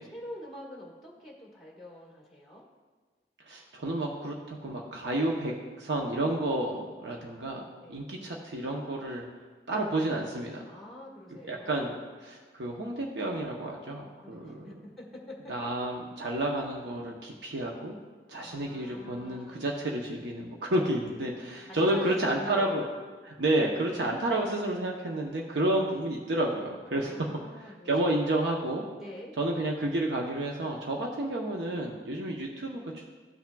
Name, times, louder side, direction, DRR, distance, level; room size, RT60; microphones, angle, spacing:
voice 1, 0.0-2.6 6.6-6.8 7.8-8.1 10.7-12.1 14.2-15.7 18.3-19.7 21.7-22.8 26.9-28.4 29.0-29.3, left 1 dB, ahead, -4 dB, 1.5 m, -45 dB
voice 2, 3.5-7.6 7.9-9.2 9.7-10.6 11.4-11.9 12.2-14.7 15.5-18.0 18.3-22.8 23.2-27.3 27.6-28.8 29.4-33.0, right 1 dB, 85° right, -1 dB, 0.8 m, -30 dB
13.5 x 5.8 x 2.3 m, 1.4 s
head